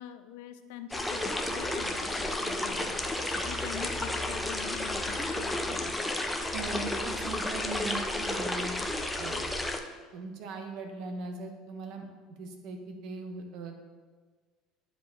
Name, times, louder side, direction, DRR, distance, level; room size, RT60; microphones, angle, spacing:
voice 1, 0.0-6.1, left 10 dB, 85° left, 10 dB, 0.5 m, -45 dB
sound 1, 0.9-9.8, left 1 dB, 5° left, 0.5 m, -32 dB
voice 2, 6.5-8.8 9.2-9.4 10.1-12.1 12.4-13.8, right 3 dB, 55° right, 4 dB, 1.0 m, -39 dB
9.3 x 4.7 x 3.9 m, 1.4 s
cardioid pair, 145°, 0 cm